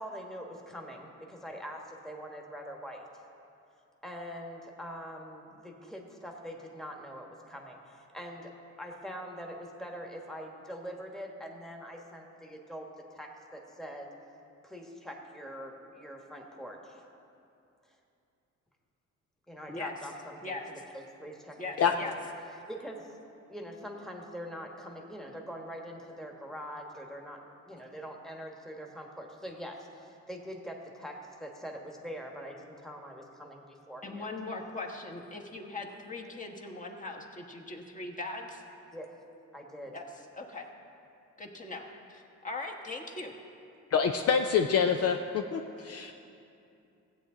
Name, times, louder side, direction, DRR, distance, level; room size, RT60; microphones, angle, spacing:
voice 1, 0.0-3.1 4.0-8.5 8.8-14.1 14.6-17.1 19.5-20.6 20.9-22.2 22.7-23.2 23.5-34.3 38.9-39.2 39.5-40.0, equal, ahead, 1 dB, 1.3 m, -43 dB
voice 2, 21.6-22.1 34.0-38.6 39.9-40.7 41.4-41.8 42.1-43.3, left 2 dB, 25° left, 0 dB, 1.3 m, -40 dB
voice 3, 43.9-46.2, left 6 dB, 55° left, 4 dB, 0.5 m, -26 dB
15.5 x 8.4 x 3.8 m, 2.7 s
cardioid pair, 90°, 30 cm